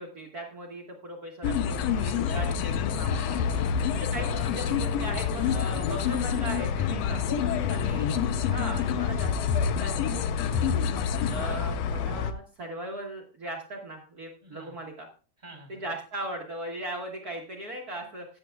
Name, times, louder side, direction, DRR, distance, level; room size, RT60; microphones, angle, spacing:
voice 1, 0.0-3.1 3.5-3.6 3.9-7.2 7.7-8.1 8.4-10.7 11.3-15.1 15.7-18.3, right 1 dB, 50° right, 0 dB, 1.1 m, -38 dB
sound 1, 1.4-12.3, left 7 dB, 80° left, 1.5 m, -27 dB
voice 2, 2.4-2.8 3.1-3.7 4.0-4.6 5.9-6.5 7.4-7.8 11.2-11.4 14.4-14.8 15.4-15.8, right 1 dB, 15° right, 2 dB, 2.9 m, -48 dB
15.0 x 10.0 x 2.3 m, 0.38 s
omnidirectional pair, 3.7 m